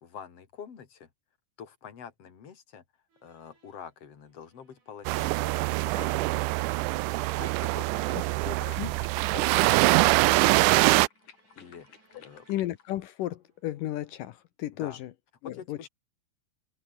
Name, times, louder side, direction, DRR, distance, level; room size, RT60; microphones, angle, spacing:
voice 1, 0.0-1.1 1.6-2.8 3.2-8.2 8.4-9.0 9.3-10.5 11.6-11.9 12.2-12.5 14.8-15.0 15.4-15.9, left 7 dB, 45° left, 3.6 m, -46 dB
sound 1, 3.1-14.3, right 4 dB, 60° right, 7.8 m, -68 dB
sound 2, 5.0-11.1, right 22 dB, 80° right, 1.9 m, -24 dB
sound 3, 6.8-13.0, left 8 dB, 65° left, 3.9 m, -56 dB
voice 2, 12.5-15.1 15.4-15.9, left 14 dB, 80° left, 2.7 m, -34 dB
omnidirectional pair, 3.9 m